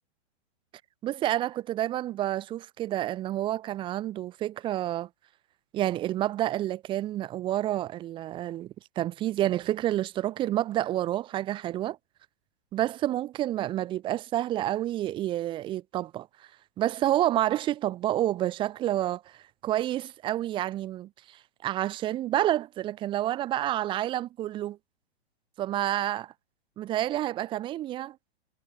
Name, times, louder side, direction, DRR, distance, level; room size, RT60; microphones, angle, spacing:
voice 1, 1.0-5.1 5.7-12.0 12.7-16.3 16.8-24.8 25.6-26.3 26.8-28.2, right 13 dB, 15° right, 0.5 m, -29 dB
hypercardioid pair, 135°, 32 cm